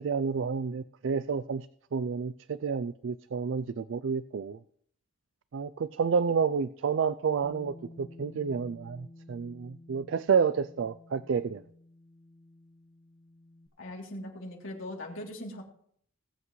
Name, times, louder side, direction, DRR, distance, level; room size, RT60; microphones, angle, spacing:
voice 1, 0.0-1.7 1.9-4.6 5.5-11.6, right 6 dB, 70° right, 15 dB, 0.4 m, -30 dB
Bass guitar, 7.4-13.7, left 1 dB, 30° left, 1.1 m, -52 dB
voice 2, 13.8-15.6, left 1 dB, 80° left, -1 dB, 3.0 m, -40 dB
20.5 x 8.1 x 3.2 m, 0.63 s
head